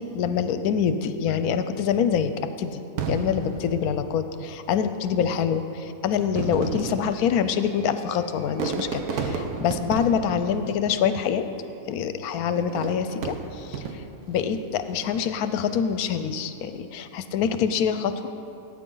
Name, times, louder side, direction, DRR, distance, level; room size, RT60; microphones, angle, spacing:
voice 1, 0.0-2.3 2.6-11.5 11.9-18.3, left 7 dB, 80° left, 10 dB, 1.1 m, -25 dB
Fireworks, 3.0-4.6 5.4-5.5 6.2-11.5 12.6-14.3 14.9-15.4, right 5 dB, 85° right, 1.3 m, -33 dB
16.5 x 9.2 x 3.9 m, 2.8 s
omnidirectional pair, 1.6 m